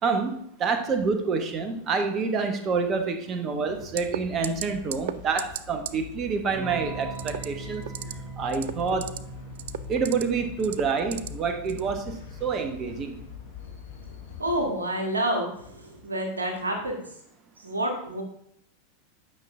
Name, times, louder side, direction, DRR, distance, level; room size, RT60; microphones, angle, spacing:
voice 1, 0.0-7.8 8.4-9.1 9.9-13.2, right 5 dB, 30° right, 6 dB, 1.1 m, -27 dB
sound 1, 3.7-14.7, left 7 dB, 65° left, 1.3 m, -43 dB
sound 2, 4.0-4.2 4.4-4.7 4.9-5.1 5.4-5.6 5.9-6.0 7.2-7.5 7.8-8.1 8.5-9.2 9.6-10.2 10.6-11.3 11.7-11.9, right 12 dB, 60° right, 0.3 m, -32 dB
Electric guitar / Strum, 6.5-14.8, right 4 dB, 10° right, 1.6 m, -43 dB
voice 2, 14.4-17.0 17.6-18.2, right 1 dB, 80° right, 2 dB, 1.7 m, -28 dB
8.7 x 5.8 x 3.6 m, 0.71 s
figure-of-eight pair, 85°, 0 cm